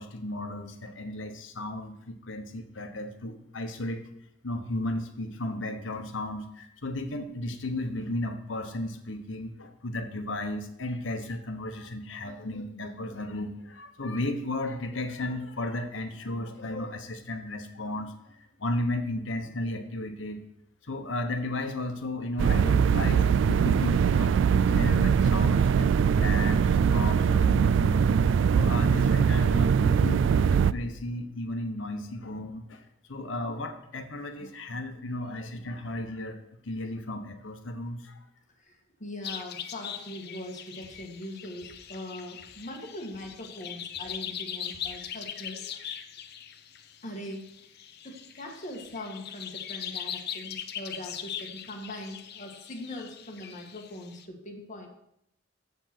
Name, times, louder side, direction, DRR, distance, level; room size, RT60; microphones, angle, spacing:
voice 1, 0.0-4.0 4.4-20.4 20.8-28.0 28.5-36.4 36.6-38.2, left 1 dB, 85° left, 7 dB, 1.1 m, -34 dB
sound 1, 22.4-30.7, right 7 dB, 70° right, 0.3 m, -22 dB
voice 2, 38.6-45.6 47.0-47.7 48.0-54.9, left 1 dB, 40° left, 1 dB, 1.7 m, -41 dB
sound 2, 39.2-54.2, left 9 dB, 60° left, 0.7 m, -40 dB
sound 3, 40.8-42.7 43.1-45.1, right 1 dB, 30° right, 2.3 m, -58 dB
7.7 x 7.0 x 6.0 m, 0.78 s
head